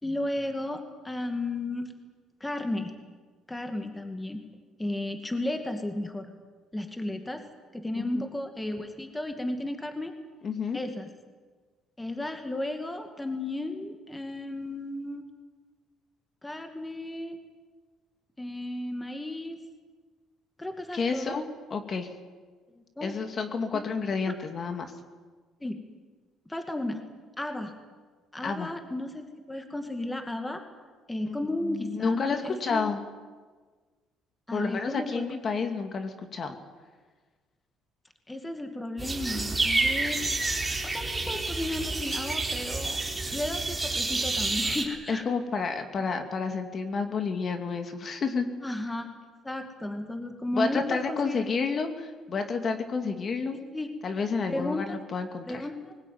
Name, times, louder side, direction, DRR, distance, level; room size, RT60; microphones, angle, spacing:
voice 1, 0.0-1.9 2.4-2.9 3.5-4.4 4.8-6.3 6.7-7.4 7.7-10.1 10.7-11.1 12.0-15.2 16.4-17.4 18.4-19.6 20.6-21.4 23.0-23.1 23.7-23.9 25.6-25.8 26.5-27.0 27.4-27.7 28.3-30.6 31.1-33.0 34.5-35.2 38.3-40.2 40.9-43.0 43.3-45.2 48.6-49.1 49.4-51.4 53.7-53.9 54.5-54.8 55.4-55.9, left 1 dB, 10° left, 6 dB, 2.2 m, -34 dB
voice 2, 8.0-8.3 10.4-10.8 20.9-21.4 21.7-22.1 23.0-24.9 28.4-28.7 31.3-31.4 31.6-33.0 34.5-36.6 45.1-48.5 50.5-53.6 54.0-55.7, left 5 dB, 40° left, 6 dB, 2.4 m, -30 dB
sound 1, 39.0-44.8, right 3 dB, 15° right, 3.5 m, -29 dB
21.0 x 19.5 x 9.4 m, 1.4 s
cardioid pair, 120°, 0 cm